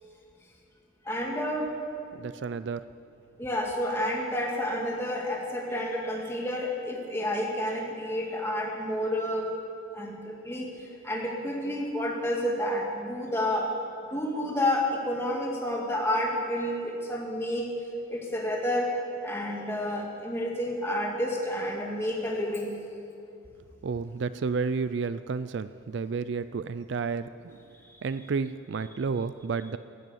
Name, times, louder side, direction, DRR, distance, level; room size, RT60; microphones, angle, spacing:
voice 1, 1.1-1.8 3.4-9.5 9.9-10.8 11.0-13.7 14.1-17.7 18.1-18.9 19.2-22.7, left 1 dB, 10° left, -1 dB, 2.1 m, -30 dB
voice 2, 2.2-2.9 23.8-27.6 28.0-29.8, right 5 dB, 55° right, 13 dB, 0.4 m, -31 dB
15.0 x 11.0 x 8.3 m, 2.5 s
head